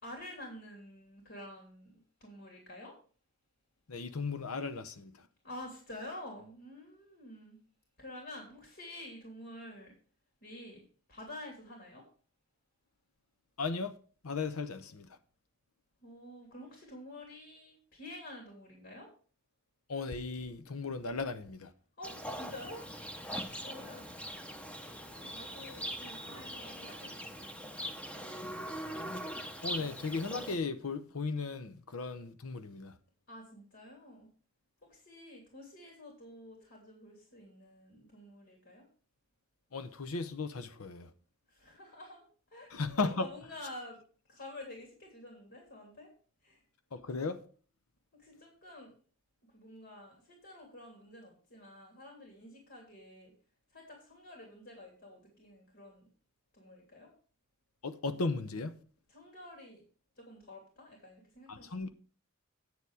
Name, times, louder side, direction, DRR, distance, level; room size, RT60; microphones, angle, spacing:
voice 1, 0.0-2.9 5.4-7.6 8.0-9.9 10.4-12.1 16.0-19.1 22.0-23.2 23.6-24.1 25.1-28.4 33.3-34.3 34.8-38.9 41.5-42.8 43.1-44.0 44.3-46.1 46.4-46.6 48.1-49.0 49.5-53.3 53.7-56.1 56.5-57.1 59.1-59.8 60.1-61.9, left 1 dB, 55° left, 3.0 m, -49 dB
voice 2, 3.9-5.1 13.6-14.0 14.2-15.1 19.9-21.7 29.6-32.9 39.7-41.1 42.7-43.3 46.9-47.4 57.8-58.7 61.5-61.9, left 3 dB, 90° left, 0.8 m, -36 dB
Livestock farm animals working animals, 22.0-30.6, equal, 5° left, 0.9 m, -42 dB
9.5 x 6.9 x 4.8 m
head